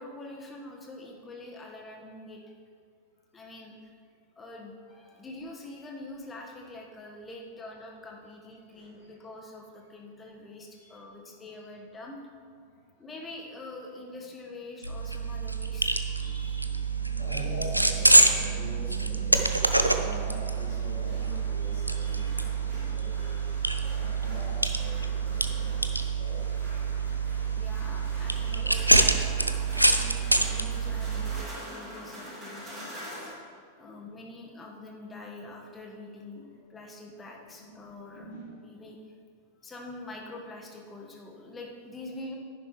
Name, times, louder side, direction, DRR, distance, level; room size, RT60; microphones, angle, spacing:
voice 1, 0.0-2.5 3.3-3.9 4.4-12.2 13.0-16.0 27.5-29.3 29.9-32.9 33.8-36.4 36.7-39.1 39.6-42.4, left 2 dB, 15° left, 0 dB, 1.5 m, -45 dB
voice 2, 8.7-9.1 10.7-11.0 12.6-13.0 16.1-26.4 33.7-34.2 36.6-36.7 37.6-37.7 38.1-38.6, left 1 dB, 50° left, -9 dB, 2.6 m, -44 dB
sound 1, 14.8-31.4, right 2 dB, 90° right, 0.5 m, -26 dB
sound 2, 19.6-33.3, equal, 20° right, 2.7 m, -46 dB
10.5 x 10.0 x 3.2 m, 2.2 s
figure-of-eight pair, 90°, 0 cm